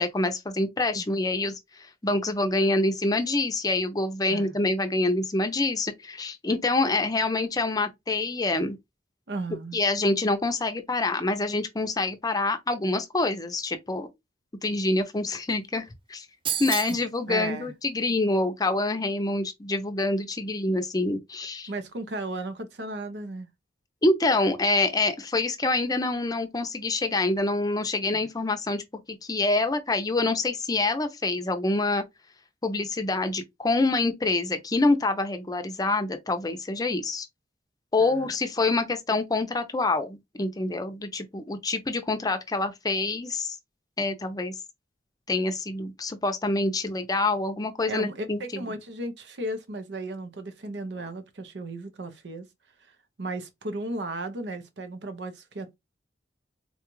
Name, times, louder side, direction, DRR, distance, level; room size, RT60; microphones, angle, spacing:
voice 1, 0.0-1.5 2.0-8.8 9.7-14.1 14.6-15.8 16.1-16.3 16.6-21.7 24.0-28.8 29.1-32.0 32.6-37.3 37.9-43.5 44.0-44.5 45.3-48.4, left 2 dB, 20° left, 0.6 m, -26 dB
voice 2, 9.3-9.8 17.3-17.7 21.7-23.5 28.1-28.3 38.0-38.3 47.9-52.5 53.2-55.7, right 2 dB, 75° right, 0.7 m, -35 dB
sound 1, 16.4-17.1, right 8 dB, 30° right, 0.4 m, -29 dB
3.9 x 2.4 x 3.0 m
head